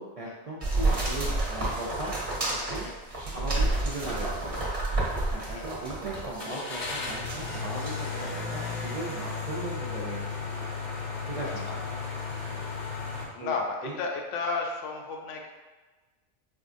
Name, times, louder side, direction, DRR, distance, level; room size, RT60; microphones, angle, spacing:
voice 1, 0.0-2.1 2.5-4.9 5.3-10.7 11.3-11.8 13.4-13.5 13.8-13.9, right 2 dB, 65° right, -5 dB, 0.3 m, -38 dB
sound 1, 0.6-6.5 6.9-7.5 7.9-8.0, right 2 dB, 35° right, 0.7 m, -29 dB
sound 2, 3.1-3.3 3.8-3.9 6.4-13.2, left 4 dB, 50° left, 0.6 m, -34 dB
voice 2, 13.3-15.5, left 4 dB, 85° left, 1 dB, 0.9 m, -32 dB
4.3 x 2.3 x 2.5 m, 1.3 s
omnidirectional pair, 1.2 m